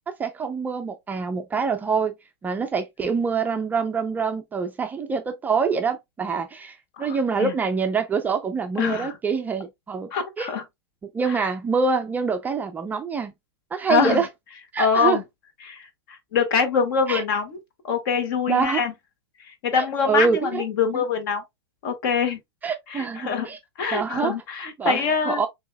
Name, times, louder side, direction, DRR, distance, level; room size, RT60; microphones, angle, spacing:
voice 1, 0.2-2.1 2.4-10.1 10.4-10.5 11.1-13.3 13.7-14.3 14.7-15.2 17.1-17.2 18.5-18.8 19.7-20.6 20.9-21.0 22.6-23.6 23.9-24.3 24.8-25.5, right 5 dB, 10° right, 0.4 m, -25 dB
voice 2, 7.0-7.5 8.8-9.2 10.1-10.6 11.3-11.5 13.9-14.2 14.8-15.2 15.6-17.6 17.8-18.9 19.6-21.4 21.8-22.4 22.9-23.5 23.8-25.4, left 6 dB, 50° left, 1.7 m, -24 dB
6.0 x 2.9 x 2.2 m
hypercardioid pair, 130°, 14 cm